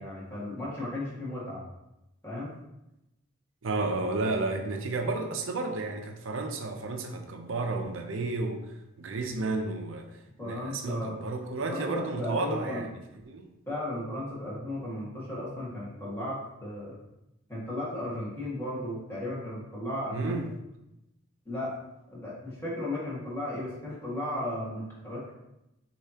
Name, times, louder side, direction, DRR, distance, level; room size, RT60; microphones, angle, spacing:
voice 1, 0.0-1.6 2.2-2.5 10.4-11.2 11.7-12.8 13.7-17.0 17.5-20.5 21.4-21.8 22.1-25.4, left 1 dB, 10° left, -8 dB, 1.6 m, -35 dB
voice 2, 3.6-8.6 9.0-12.9 13.3-13.5 20.1-20.5, right 3 dB, 75° right, 4 dB, 0.6 m, -32 dB
6.5 x 2.8 x 2.8 m, 0.89 s
head